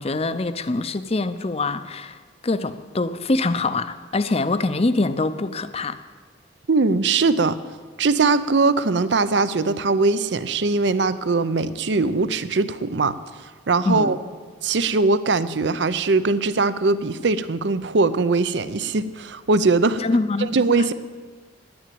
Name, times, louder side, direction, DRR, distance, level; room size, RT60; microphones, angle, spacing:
voice 1, 0.0-6.0 13.9-14.1 20.0-20.6, left 2 dB, 30° left, 12 dB, 0.6 m, -24 dB
voice 2, 6.7-7.6 8.0-13.2 13.7-14.2 14.6-20.0 20.5-20.9, right 3 dB, 65° right, 14 dB, 0.6 m, -21 dB
10.5 x 9.5 x 9.2 m, 1.5 s
head